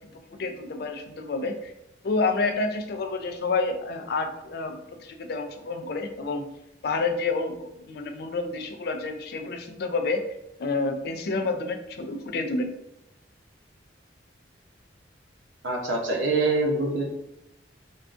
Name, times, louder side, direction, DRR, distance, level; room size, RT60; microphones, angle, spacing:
voice 1, 0.1-1.7 2.0-6.5 6.8-10.2 10.6-12.7, left 3 dB, 55° left, 5 dB, 0.4 m, -29 dB
voice 2, 15.6-17.0, right 2 dB, 75° right, -1 dB, 0.7 m, -24 dB
3.6 x 2.3 x 2.5 m, 0.85 s
head